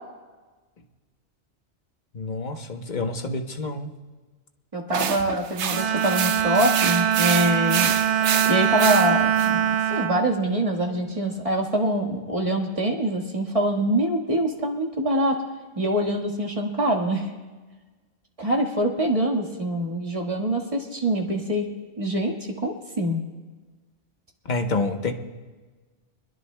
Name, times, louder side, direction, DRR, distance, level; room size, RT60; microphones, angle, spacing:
voice 1, 2.1-4.0 24.5-25.1, left 3 dB, 45° left, 5 dB, 1.1 m, -28 dB
voice 2, 4.7-7.9 8.5-15.4 15.7-17.3 18.4-21.7 22.0-23.2, right 1 dB, 30° right, 0 dB, 1.7 m, -24 dB
sound 1, 4.9-9.5, right 8 dB, 80° right, 1.0 m, -28 dB
Bowed string instrument, 5.7-11.2, right 9 dB, 60° right, 0.4 m, -23 dB
24.0 x 21.5 x 2.2 m, 1.3 s
omnidirectional pair, 1.2 m